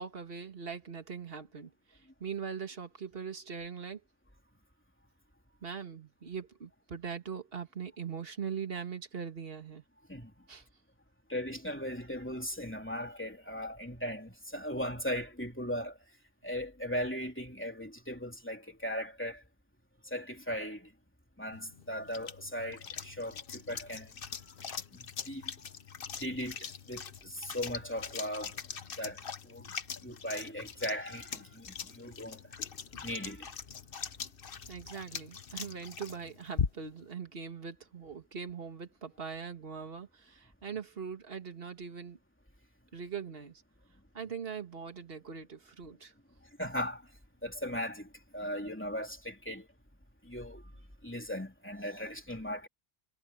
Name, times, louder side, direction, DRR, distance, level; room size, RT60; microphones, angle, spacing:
voice 1, 0.0-4.0 5.6-9.8 10.5-10.7 34.7-42.2 42.9-43.6 44.1-46.1, right 6 dB, 50° right, 2.0 m, -41 dB
voice 2, 11.3-16.0 16.4-19.4 20.0-20.9 21.4-24.1 24.9-25.5 26.1-28.6 29.0-29.7 30.0-32.4 33.0-33.5 46.6-47.1 47.4-49.7 50.2-50.6 51.0-52.7, equal, 10° left, 3.2 m, -38 dB
sound 1, 21.5-37.1, left 6 dB, 50° left, 1.1 m, -41 dB
omnidirectional pair, 1.2 m